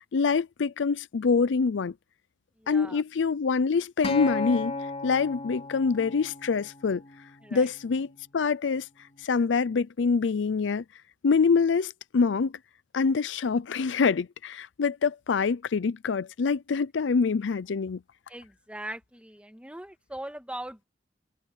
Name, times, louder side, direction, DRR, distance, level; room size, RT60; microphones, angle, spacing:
voice 1, 0.1-1.9 2.7-4.7 5.0-7.0 7.5-8.1 8.3-8.9 9.2-10.8 11.2-12.5 12.9-18.0, left 5 dB, 75° left, 0.5 m, -25 dB
voice 2, 2.6-3.0 7.4-7.7 18.3-20.9, right 1 dB, 5° right, 2.5 m, -40 dB
Acoustic guitar, 4.0-8.3 9.1-9.2, left 2 dB, 35° left, 3.7 m, -35 dB
head